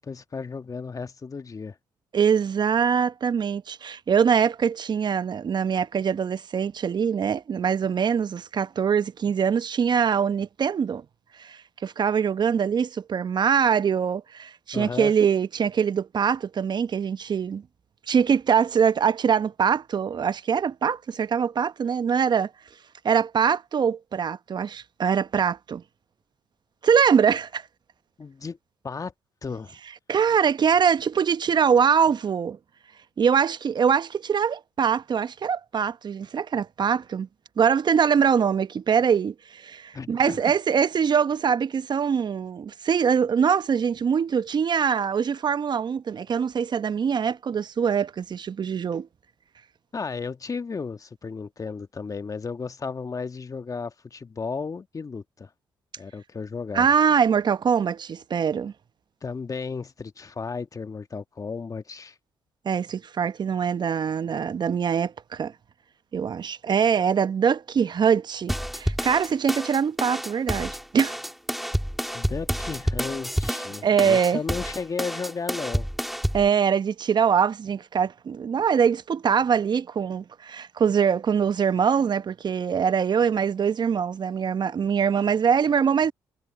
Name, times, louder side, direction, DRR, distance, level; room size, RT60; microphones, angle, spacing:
voice 1, 0.0-1.7 14.7-15.1 28.2-28.6 28.8-29.1 29.4-29.8 39.9-40.4 49.9-55.5 56.0-56.9 59.2-62.1 72.1-75.9, left 5 dB, 35° left, 1.5 m, -34 dB
voice 2, 2.1-11.0 11.4-17.6 18.1-22.5 23.0-25.8 26.8-27.6 30.1-32.6 33.2-37.3 37.6-49.1 56.7-58.7 62.6-65.5 66.1-71.1 73.8-74.4 76.3-86.1, right 7 dB, 50° right, 1.0 m, -23 dB
sound 1, 68.5-76.5, equal, ahead, 2.6 m, -29 dB
hypercardioid pair, 50°, 10 cm